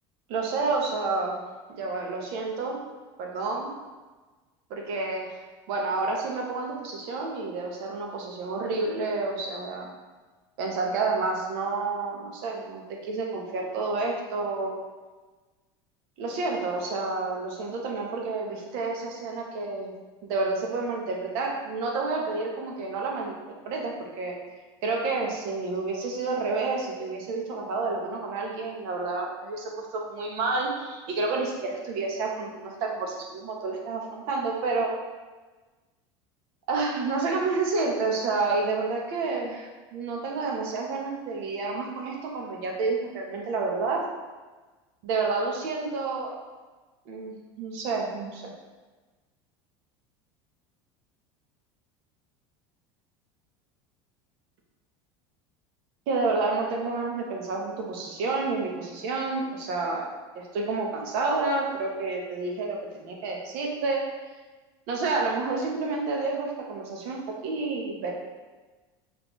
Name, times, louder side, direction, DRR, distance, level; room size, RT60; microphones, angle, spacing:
voice 1, 0.3-1.4 1.7-2.8 3.2-3.7 4.7-5.4 5.7-9.9 10.6-14.8 16.2-19.9 20.2-23.4 23.6-24.3 24.8-34.9 36.7-44.0 45.0-46.3 47.1-48.5 56.1-60.1 60.3-64.1 64.9-68.1, right 3 dB, 70° right, 0 dB, 1.0 m, -29 dB
5.1 x 3.3 x 3.1 m, 1.3 s
supercardioid pair, 95°, 14 cm